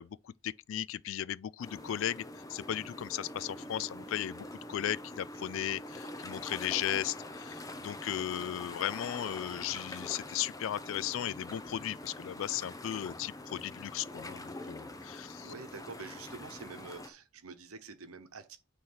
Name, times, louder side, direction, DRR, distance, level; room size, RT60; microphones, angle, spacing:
voice 1, 0.0-2.2 2.5-15.5, left 11 dB, 60° left, 0.3 m, -36 dB
sound 1, 1.6-17.1, left 1 dB, 15° left, 0.7 m, -45 dB
voice 2, 5.6-6.0 15.4-18.6, right 4 dB, 80° right, 1.0 m, -47 dB
sound 2, 8.7-17.0, left 1 dB, 40° left, 1.2 m, -67 dB
8.7 x 3.2 x 5.6 m
head